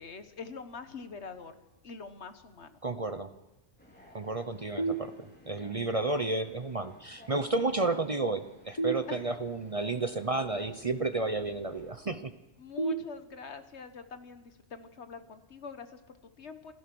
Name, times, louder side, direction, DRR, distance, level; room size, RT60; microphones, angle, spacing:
voice 1, 0.0-1.6 1.8-2.8 9.1-9.2 12.6-16.7, left 5 dB, 70° left, 9 dB, 1.6 m, -44 dB
voice 2, 2.8-3.3 4.1-12.3, right 3 dB, 35° right, 9 dB, 0.8 m, -32 dB
sound 1, 3.8-11.9, left 1 dB, 10° left, 4.4 m, -56 dB
sound 2, 4.8-5.7 8.8-9.8 12.8-13.8, right 3 dB, 25° left, 1.1 m, -35 dB
28.0 x 15.5 x 6.1 m, 1.1 s
omnidirectional pair, 1.2 m